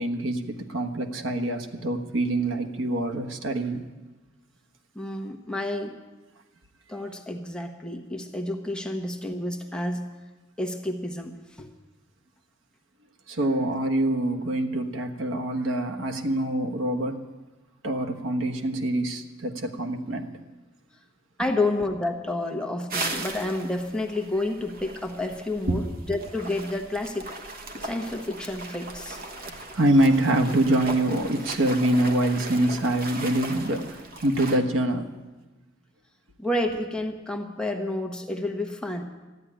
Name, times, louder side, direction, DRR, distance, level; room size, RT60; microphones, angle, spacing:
voice 1, 0.0-3.8 13.3-17.2 17.8-20.3 25.7-25.8 29.4-35.1, right 1 dB, 70° right, 4 dB, 1.3 m, -25 dB
voice 2, 4.9-6.0 6.9-10.1 10.6-11.7 21.4-27.3 27.8-29.2 36.4-39.0, left 2 dB, 5° left, 3 dB, 1.2 m, -30 dB
sound 1, 22.9-34.6, right 2 dB, 50° right, 1.4 m, -38 dB
13.5 x 9.9 x 10.0 m, 1.2 s
head